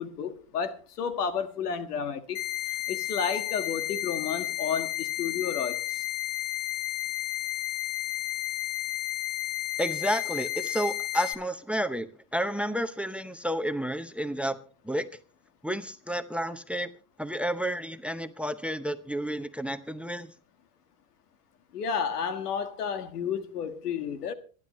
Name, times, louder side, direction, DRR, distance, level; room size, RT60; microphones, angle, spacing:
voice 1, 0.0-2.4 2.9-5.8 21.7-24.3, left 7 dB, 90° left, 1.8 m, -31 dB
sound 1, 2.3-11.3, left 15 dB, 50° left, 1.5 m, -32 dB
voice 2, 9.8-14.6 14.8-15.1 15.6-16.9 17.2-20.3, equal, 5° right, 0.7 m, -31 dB
26.0 x 10.5 x 3.1 m
hypercardioid pair, 110°, 45 cm